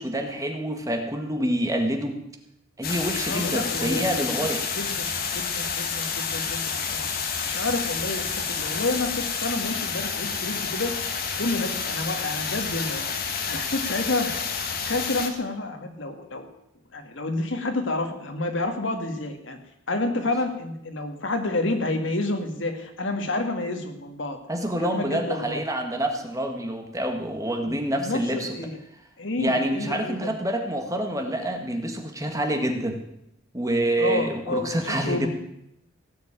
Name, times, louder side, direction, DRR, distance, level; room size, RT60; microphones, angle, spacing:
voice 1, 0.0-2.2 2.8-4.6 24.5-28.5 29.4-33.0 33.5-35.3, right 1 dB, 15° right, 4 dB, 1.7 m, -27 dB
sound 1, 2.8-15.3, left 6 dB, 50° left, 1.8 m, -29 dB
voice 2, 3.2-4.5 4.7-5.1 5.3-7.1 7.5-10.9 11.4-13.1 13.5-14.3 14.8-16.5 16.9-19.6 19.9-24.4 24.8-25.6 27.6-28.8 29.2-30.3 34.0-35.3, left 2 dB, 65° left, 5 dB, 2.1 m, -29 dB
17.0 x 6.9 x 9.0 m, 0.81 s
head